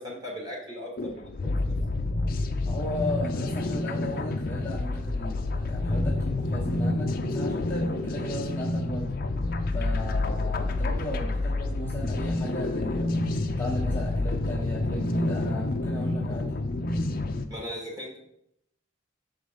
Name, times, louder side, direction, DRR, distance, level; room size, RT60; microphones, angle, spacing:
voice 1, 0.0-1.8 17.5-18.2, equal, 20° right, -2 dB, 1.7 m, -38 dB
sound 1, 1.0-17.5, left 2 dB, 45° left, 0.5 m, -28 dB
voice 2, 2.6-9.1 9.7-13.1 13.6-16.5, left 1 dB, 10° left, -6 dB, 1.0 m, -36 dB
6.8 x 3.9 x 5.1 m, 0.77 s
head